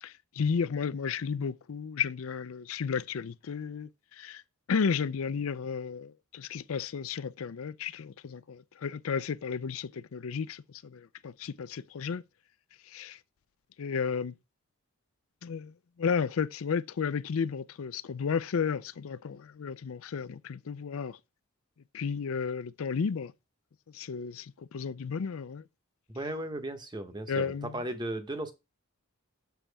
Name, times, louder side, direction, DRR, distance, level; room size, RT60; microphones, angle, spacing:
voice 1, 0.0-4.4 4.7-12.2 12.9-13.2 13.8-14.3 15.4-21.2 21.9-23.3 23.9-25.6 27.3-27.8, left 6 dB, 65° left, 0.4 m, -33 dB
voice 2, 26.1-28.5, right 1 dB, 20° right, 1.0 m, -36 dB
7.2 x 7.0 x 3.4 m
head